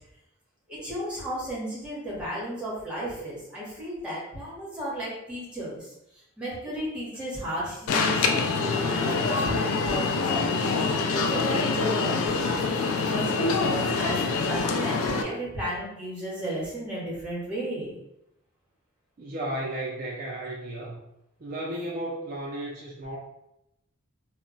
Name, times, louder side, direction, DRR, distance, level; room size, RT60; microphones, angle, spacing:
voice 1, 0.7-8.3 8.9-12.5 13.0-18.0, equal, 5° right, -6 dB, 0.9 m, -34 dB
Alarm, 7.9-15.2, left 4 dB, 70° left, 0.3 m, -25 dB
voice 2, 19.2-21.0 21.4-23.2, right 1 dB, 40° right, -4 dB, 0.4 m, -34 dB
2.2 x 2.0 x 3.8 m, 0.84 s
head